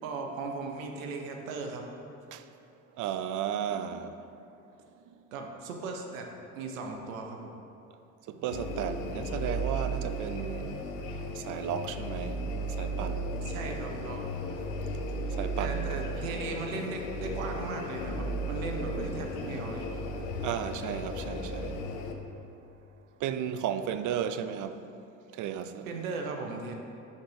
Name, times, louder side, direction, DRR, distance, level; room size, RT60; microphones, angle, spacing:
voice 1, 0.0-1.9 5.3-7.6 13.4-14.2 15.6-19.9 25.9-26.7, right 4 dB, 85° right, 0.7 m, -37 dB
voice 2, 3.0-4.3 8.3-10.8 11.3-13.3 15.4-15.9 20.3-21.8 23.2-24.9 25.3-25.9, right 9 dB, 50° right, 0.5 m, -34 dB
sound 1, 8.5-22.1, right 1 dB, 85° left, 0.6 m, -35 dB
10.5 x 3.9 x 3.4 m
hypercardioid pair, 65°, 39 cm